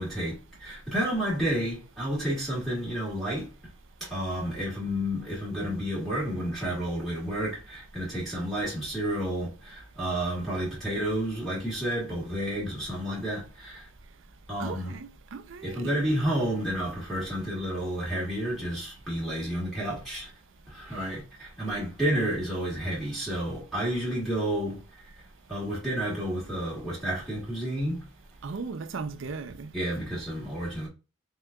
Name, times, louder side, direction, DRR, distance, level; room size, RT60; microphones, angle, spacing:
voice 1, 0.0-3.5 4.0-13.9 14.5-15.0 15.6-20.3 20.7-24.8 25.5-28.0 29.7-30.9, right 1 dB, ahead, 1.6 m, -30 dB
voice 2, 14.6-15.9 28.4-29.7, right 4 dB, 75° right, 0.5 m, -37 dB
3.8 x 3.6 x 2.3 m
head